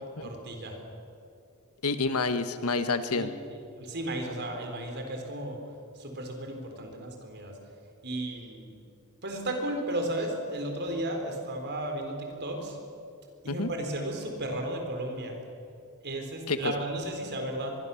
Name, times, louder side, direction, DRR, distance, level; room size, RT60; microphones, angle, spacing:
voice 1, 0.2-0.8 3.1-5.6 6.0-7.6 8.0-8.7 9.2-12.8 13.4-15.4 16.0-17.8, right 1 dB, 50° right, 3 dB, 4.2 m, -34 dB
voice 2, 1.8-3.3 13.5-13.7 16.5-16.7, left 3 dB, 85° left, 10 dB, 1.4 m, -28 dB
24.5 x 22.0 x 7.1 m, 2.6 s
head